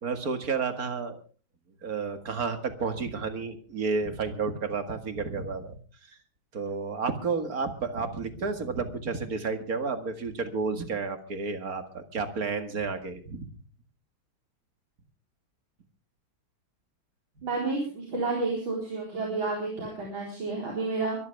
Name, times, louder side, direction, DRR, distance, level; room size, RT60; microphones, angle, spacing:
voice 1, 0.0-1.2 1.8-5.8 6.5-13.5, right 4 dB, 45° right, 8 dB, 2.2 m, -31 dB
voice 2, 17.4-21.2, right 3 dB, 75° right, -2 dB, 5.1 m, -30 dB
23.5 x 13.5 x 3.5 m, 0.37 s
omnidirectional pair, 2.2 m